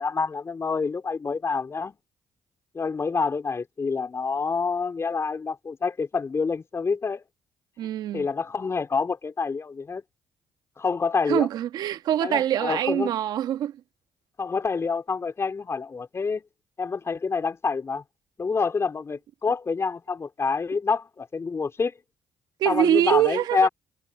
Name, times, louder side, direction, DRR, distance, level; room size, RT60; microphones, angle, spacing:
voice 1, 0.0-2.0 2.7-7.2 8.1-10.0 10.8-11.5 12.2-13.2 14.4-16.4 16.8-18.0 18.4-21.9 22.7-23.7, left 5 dB, 40° left, 3.7 m, -27 dB
voice 2, 7.8-8.3 11.3-13.8 22.6-23.7, right 12 dB, 75° right, 1.3 m, -24 dB
supercardioid pair, 55°, 7 cm